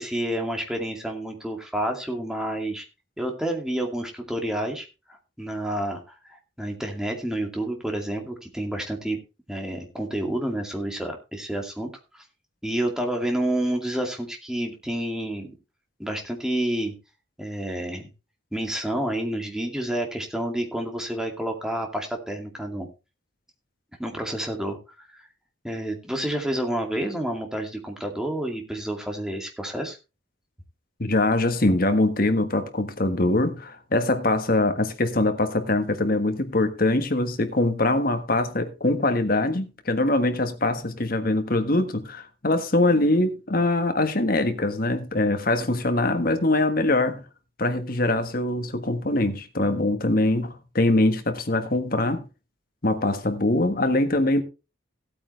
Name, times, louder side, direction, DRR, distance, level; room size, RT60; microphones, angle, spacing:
voice 1, 0.0-2.8 3.2-9.2 9.5-12.2 12.6-15.5 16.0-16.9 17.4-18.0 18.5-22.9 24.0-25.3 25.6-30.0, right 1 dB, 5° right, 2.3 m, -29 dB
voice 2, 31.0-47.2 47.6-52.2 52.8-54.4, left 2 dB, 45° left, 1.5 m, -23 dB
16.5 x 8.6 x 3.3 m
head